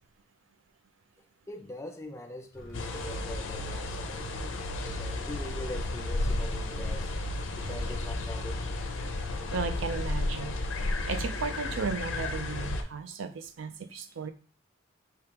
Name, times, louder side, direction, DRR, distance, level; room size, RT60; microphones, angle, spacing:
voice 1, 1.5-7.1 7.6-8.6, equal, 15° left, 0.4 m, -43 dB
sound 1, 2.5-8.8, right 1 dB, ahead, 1.5 m, -48 dB
sound 2, 2.7-12.8, left 2 dB, 85° left, 0.6 m, -33 dB
voice 2, 9.5-10.6 10.8-14.3, right 5 dB, 80° right, 0.5 m, -35 dB
4.6 x 3.4 x 2.9 m
head